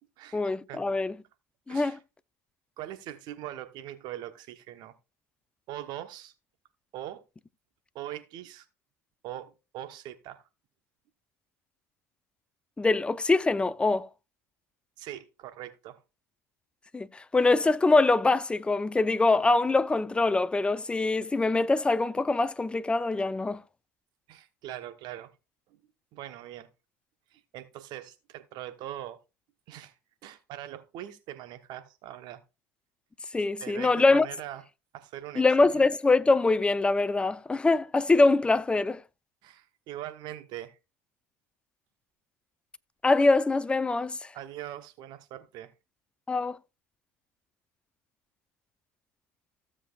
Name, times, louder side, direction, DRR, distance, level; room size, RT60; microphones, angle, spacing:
voice 1, 0.3-1.2 1.7-2.0 12.8-14.1 16.9-23.6 33.3-34.3 35.4-39.0 43.0-44.3 46.3-46.6, left 3 dB, 10° left, 0.6 m, -24 dB
voice 2, 2.8-4.9 5.7-6.3 6.9-7.2 7.9-8.7 9.2-10.4 15.0-16.0 24.3-25.3 26.1-26.7 27.3-29.2 29.7-29.9 30.2-32.4 33.6-34.6 34.9-35.4 39.4-40.8 44.3-45.7, right 12 dB, 55° right, 1.0 m, -41 dB
15.5 x 7.5 x 2.4 m
hypercardioid pair, 90°, 9 cm